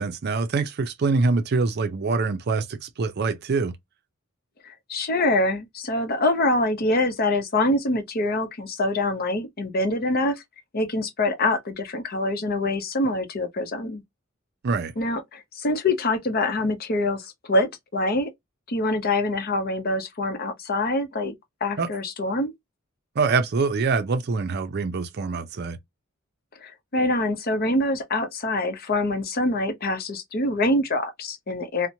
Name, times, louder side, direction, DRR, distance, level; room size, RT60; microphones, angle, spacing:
voice 1, 0.0-3.7 14.6-14.9 21.8-21.9 23.2-25.8, right 4 dB, 50° right, 0.5 m, -24 dB
voice 2, 4.6-10.4 10.7-14.0 15.0-18.3 18.7-21.3 21.6-22.5 26.6-31.9, left 2 dB, 50° left, 0.7 m, -25 dB
2.9 x 2.1 x 2.6 m
head